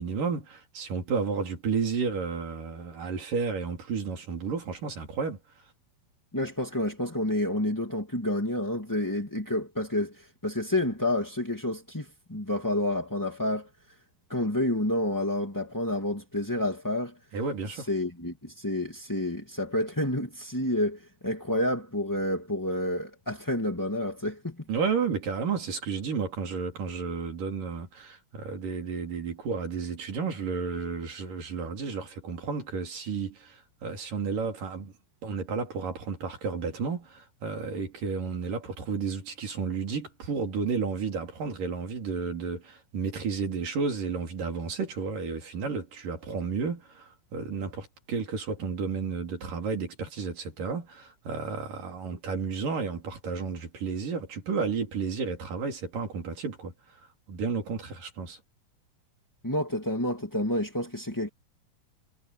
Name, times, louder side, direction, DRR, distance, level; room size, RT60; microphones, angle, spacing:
voice 1, 0.0-5.4 17.3-17.9 24.7-34.9 35.2-56.7 57.3-58.4, right 5 dB, 65° right, 5.2 m, -32 dB
voice 2, 6.3-13.7 14.3-17.1 17.7-24.5 59.4-61.3, left 1 dB, 5° left, 1.7 m, -29 dB
omnidirectional pair, 4.2 m